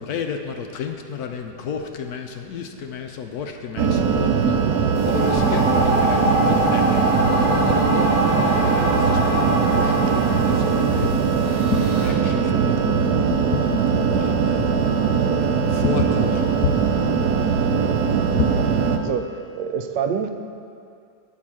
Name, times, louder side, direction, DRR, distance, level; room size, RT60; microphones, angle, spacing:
voice 1, 0.0-17.2 17.6-18.8, left 6 dB, 70° left, 4 dB, 1.0 m, -31 dB
sound 1, 3.8-19.0, right 6 dB, 70° right, 1.1 m, -20 dB
sound 2, 4.9-12.1, equal, 50° left, 2.6 m, -24 dB
voice 2, 19.5-20.3, right 7 dB, 90° right, 7 dB, 1.3 m, -27 dB
8.6 x 4.9 x 7.4 m, 2.4 s
omnidirectional pair, 1.9 m